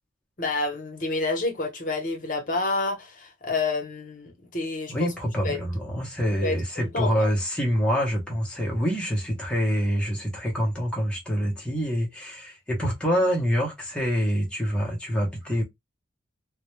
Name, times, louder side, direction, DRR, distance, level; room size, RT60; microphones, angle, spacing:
voice 1, 0.4-5.1 5.4-5.6 6.4-7.3, left 3 dB, 45° left, 0.7 m, -29 dB
voice 2, 4.9-15.6, equal, 5° left, 0.6 m, -26 dB
2.2 x 2.1 x 2.9 m
head